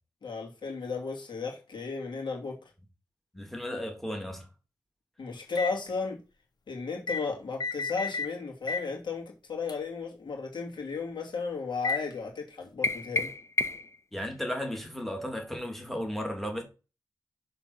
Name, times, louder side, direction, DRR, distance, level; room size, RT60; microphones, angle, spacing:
voice 1, 0.2-2.6 5.2-6.2 6.7-13.3, left 4 dB, 90° left, 2.4 m, -34 dB
voice 2, 3.3-4.5 14.1-16.6, equal, 5° left, 1.9 m, -34 dB
sound 1, 5.5-5.8 7.1-7.2 7.6-8.3 8.7-8.9 9.7-9.8 11.8-12.1, left 4 dB, 60° left, 1.1 m, -32 dB
sound 2, 12.8-14.0, left 2 dB, 35° left, 0.5 m, -30 dB
6.5 x 4.0 x 6.0 m
wide cardioid pair, 130°, 8 cm